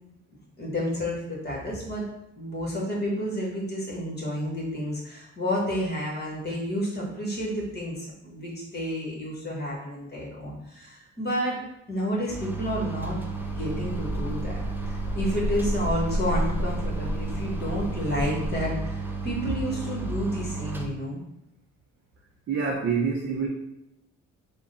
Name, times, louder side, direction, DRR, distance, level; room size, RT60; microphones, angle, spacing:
voice 1, 0.6-2.0 2.4-11.6 11.9-13.3 13.5-21.2, equal, 35° left, -3 dB, 1.5 m, -30 dB
sound 1, 12.3-20.9, right 3 dB, 5° right, 0.5 m, -33 dB
sound 2, 13.3-18.6, equal, 65° left, 0.5 m, -31 dB
voice 2, 22.5-23.5, right 5 dB, 50° right, -2 dB, 0.7 m, -26 dB
3.5 x 2.3 x 3.9 m, 0.86 s
cardioid pair, 90°, 30 cm